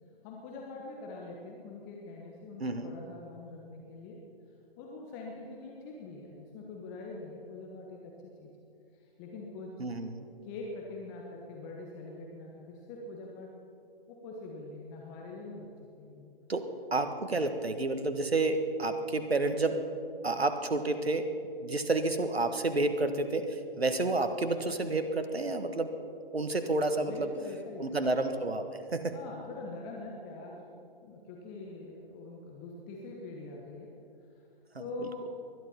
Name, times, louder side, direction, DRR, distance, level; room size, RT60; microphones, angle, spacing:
voice 1, 0.2-4.2 4.8-8.5 8.9-9.8 10.4-13.5 14.1-16.3 26.9-27.9 29.1-33.9 34.3-34.4 34.8-35.3, left 2 dB, 20° left, -1 dB, 1.3 m, -44 dB
voice 2, 2.6-2.9 9.8-10.3 16.5-19.7 20.2-21.2 21.6-25.9 26.3-27.3 27.8-29.1 35.0-35.1, right 2 dB, 80° right, 8 dB, 1.6 m, -30 dB
20.5 x 12.0 x 5.7 m, 2.6 s
figure-of-eight pair, 140°, 30 cm